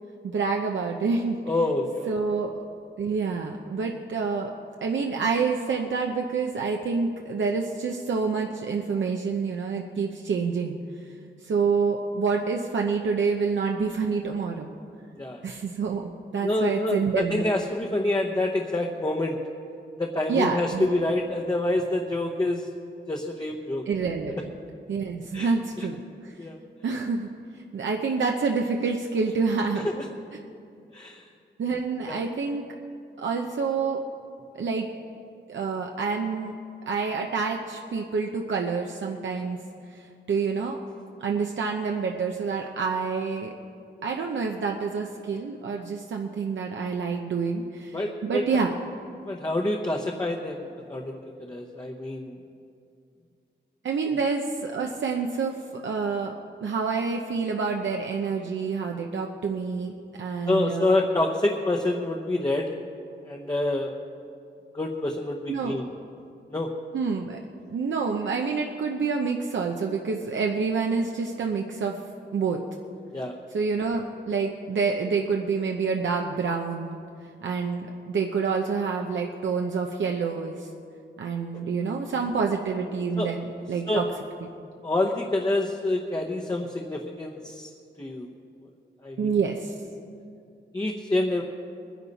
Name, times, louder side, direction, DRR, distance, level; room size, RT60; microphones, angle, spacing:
voice 1, 0.2-1.4 2.1-2.5 3.0-4.5 4.8-10.8 11.4-14.7 15.4-17.4 20.3-20.9 23.9-24.5 24.9-26.4 26.8-27.3 27.7-29.9 31.6-32.7 33.2-34.0 34.5-34.9 35.5-36.6 36.9-39.6 39.9-40.8 41.2-43.5 44.0-48.7 53.8-56.3 56.6-61.1 65.5-65.8 66.9-67.4 67.7-72.0 72.3-72.6 73.5-77.0 77.4-80.7 81.2-84.0 84.4-84.5 89.2-89.7, right 5 dB, 80° right, 1 dB, 0.8 m, -27 dB
voice 2, 1.5-2.2 15.2-15.4 16.4-19.4 20.0-22.7 23.1-23.8 25.3-25.5 25.8-25.9 26.4-26.6 29.8-30.0 30.9-31.2 32.1-32.2 47.9-48.4 49.3-52.3 54.1-54.2 60.5-62.7 63.3-63.9 64.7-65.9 66.5-66.7 73.1-73.3 81.5-81.6 83.2-83.3 83.9-84.0 84.8-87.7 88.0-88.3 89.0-89.4 90.7-91.4, left 2 dB, 20° left, 0 dB, 0.9 m, -27 dB
21.0 x 10.5 x 4.1 m, 2.4 s
wide cardioid pair, 115°, 19 cm